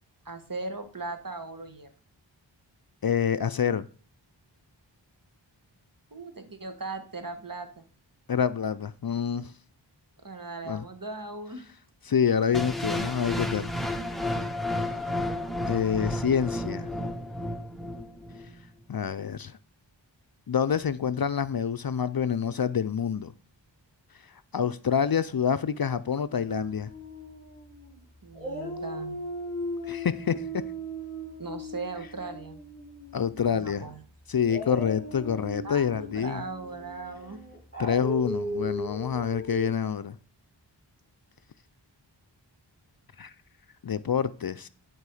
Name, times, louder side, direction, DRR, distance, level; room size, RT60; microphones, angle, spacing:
voice 1, 0.3-1.9 6.1-7.9 10.2-11.6 28.2-29.2 31.4-32.6 33.5-34.0 35.6-37.4, right 3 dB, 45° right, 1.8 m, -38 dB
voice 2, 3.0-3.9 8.3-9.5 10.7-10.8 12.1-13.7 15.7-16.9 18.9-19.6 20.5-23.3 24.5-26.9 29.9-30.4 33.1-33.8 34.3-36.4 37.8-40.2 43.2-43.3 43.8-44.7, left 7 dB, 55° left, 0.5 m, -27 dB
sound 1, 12.5-18.5, left 1 dB, ahead, 1.2 m, -32 dB
Dog, 26.4-28.0 28.3-33.4 34.4-39.7, equal, 20° left, 5.4 m, -37 dB
11.0 x 4.6 x 4.9 m
wide cardioid pair, 45°, 46 cm